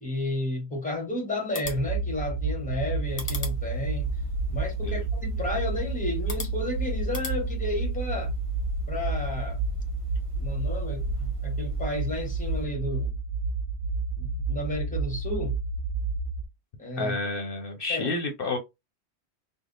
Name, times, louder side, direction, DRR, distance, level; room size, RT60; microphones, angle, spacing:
voice 1, 0.0-4.1 4.5-8.3 8.9-9.6 10.4-13.2 14.2-15.6 16.8-17.2 17.9-18.1, left 1 dB, 5° left, 1.1 m, -32 dB
sound 1, 1.4-7.4, left 3 dB, 30° left, 1.2 m, -42 dB
sound 2, 1.6-16.4, right 4 dB, 50° right, 0.5 m, -30 dB
sound 3, 3.0-12.7, left 4 dB, 30° right, 0.9 m, -38 dB
voice 2, 17.0-18.6, left 2 dB, 60° left, 0.8 m, -30 dB
3.3 x 2.2 x 3.9 m
omnidirectional pair, 1.1 m